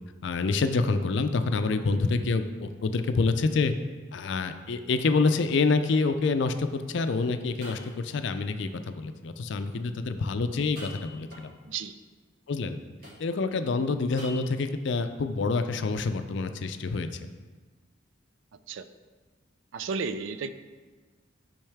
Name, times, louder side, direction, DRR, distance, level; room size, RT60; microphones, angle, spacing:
voice 1, 0.2-3.7 4.1-11.5 12.5-12.8 13.2-17.3, left 3 dB, 60° left, 9 dB, 0.4 m, -27 dB
sound 1, 4.1-4.2 4.9-5.0 7.0-7.1 7.6-8.3 10.6-11.7 13.0-13.6 14.2-14.8, left 1 dB, 50° right, 2.1 m, -46 dB
voice 2, 11.7-12.0 18.7-18.9 19.7-20.5, right 5 dB, 70° right, 11 dB, 0.4 m, -33 dB
8.7 x 5.4 x 3.5 m, 1.3 s
head